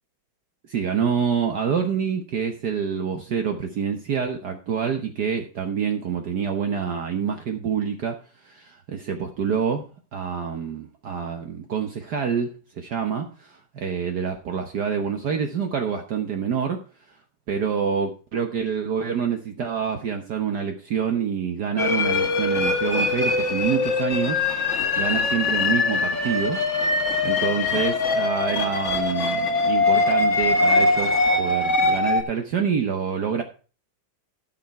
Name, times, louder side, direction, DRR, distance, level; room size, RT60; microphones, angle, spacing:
voice 1, 0.7-9.9 10.1-16.8 17.5-24.4 25.0-26.6 27.2-33.4, right 7 dB, 60° right, 4 dB, 1.6 m, -27 dB
sound 1, 21.8-32.2, left 3 dB, 40° left, 1.7 m, -22 dB
13.0 x 6.7 x 4.5 m, 0.36 s
omnidirectional pair, 2.2 m